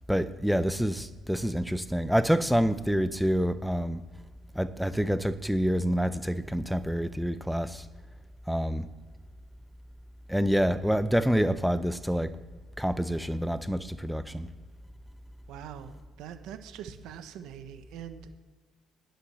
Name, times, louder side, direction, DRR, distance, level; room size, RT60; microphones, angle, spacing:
voice 1, 0.1-4.0 4.5-7.9 8.5-8.9 10.3-12.4 12.8-14.5, equal, ahead, 13 dB, 0.6 m, -27 dB
voice 2, 15.5-18.4, right 9 dB, 75° right, 9 dB, 1.1 m, -43 dB
11.5 x 7.7 x 6.8 m, 1.5 s
supercardioid pair, 80°, 0 cm